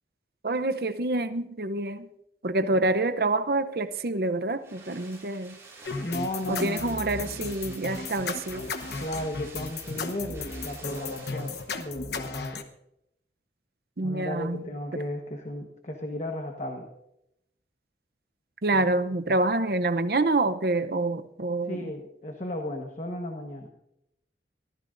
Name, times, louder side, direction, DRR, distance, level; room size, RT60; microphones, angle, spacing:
voice 1, 0.4-2.1 2.4-5.6 6.5-8.6 14.0-14.6 18.6-21.9, right 2 dB, 55° right, 0.7 m, -27 dB
sound 1, 3.8-12.0 12.3-12.4, right 3 dB, 15° right, 5.3 m, -49 dB
sound 2, 5.8-12.6, left 4 dB, 70° left, 1.0 m, -35 dB
voice 2, 6.0-7.3 9.0-12.6 14.0-16.9 18.7-18.8 19.3-19.4 21.7-23.7, left 1 dB, 40° left, 1.2 m, -35 dB
24.5 x 15.0 x 2.6 m
head